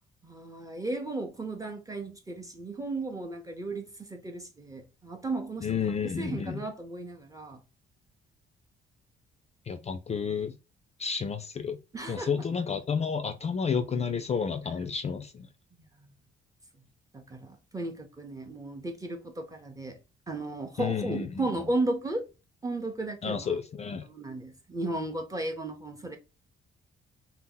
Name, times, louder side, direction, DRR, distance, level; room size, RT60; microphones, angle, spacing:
voice 1, 0.2-5.7 6.2-7.6 11.9-12.5 16.0-16.1 17.1-20.0 20.3-22.3 22.6-23.6 24.0-26.2, right 2 dB, 15° right, 0.6 m, -35 dB
voice 2, 5.6-6.6 9.7-10.6 11.0-11.8 12.1-15.5 20.8-21.5 23.2-24.1, left 6 dB, 35° left, 0.4 m, -31 dB
2.7 x 2.0 x 3.7 m
cardioid pair, 90°, 20 cm